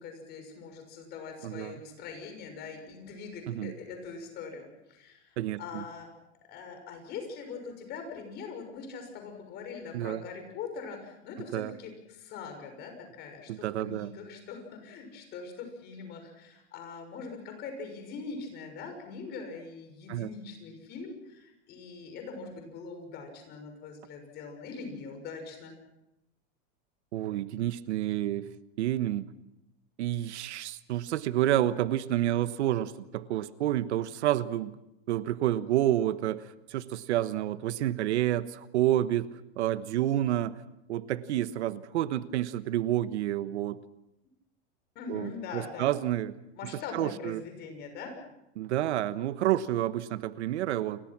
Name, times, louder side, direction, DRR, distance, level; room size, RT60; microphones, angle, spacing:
voice 1, 0.0-6.1 6.5-25.7 44.9-45.9 46.6-48.2, left 5 dB, 30° left, 5 dB, 6.3 m, -42 dB
voice 2, 1.4-1.8 3.5-3.7 5.4-5.8 9.9-10.2 11.5-11.7 13.5-14.1 20.1-20.3 27.1-29.2 30.0-34.8 35.1-39.3 39.6-40.6 40.9-43.8 45.1-46.3 46.9-47.4 48.6-51.0, right 13 dB, 75° right, 13 dB, 1.3 m, -29 dB
29.5 x 23.5 x 6.1 m, 0.88 s
supercardioid pair, 170°, 34 cm